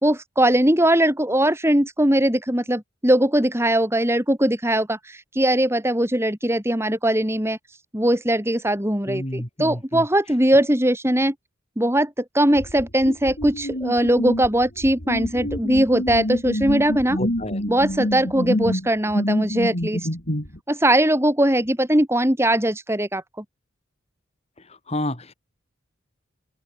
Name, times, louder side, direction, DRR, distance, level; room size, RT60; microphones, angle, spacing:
voice 1, 0.0-7.6 7.9-11.3 11.8-17.2 17.7-20.1 20.7-23.4, right 1 dB, 15° right, 3.6 m, -20 dB
voice 2, 9.1-10.0 17.2-17.6 24.7-25.3, left 1 dB, 30° left, 6.3 m, -30 dB
sound 1, 12.5-20.6, equal, 50° left, 6.0 m, -27 dB
open air
head